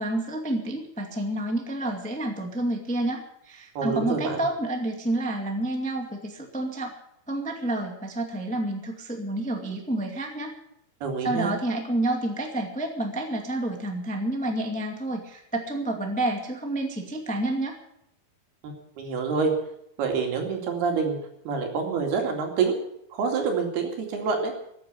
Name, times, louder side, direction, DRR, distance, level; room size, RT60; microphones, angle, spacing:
voice 1, 0.0-6.9 7.3-10.6 11.2-17.7, right 1 dB, 5° left, 2 dB, 0.9 m, -29 dB
voice 2, 3.8-4.4 11.0-11.5 18.6-19.5 20.0-21.2 21.5-22.8 23.1-24.5, right 5 dB, 85° right, 2 dB, 4.6 m, -27 dB
14.5 x 9.4 x 9.4 m, 0.76 s
omnidirectional pair, 4.4 m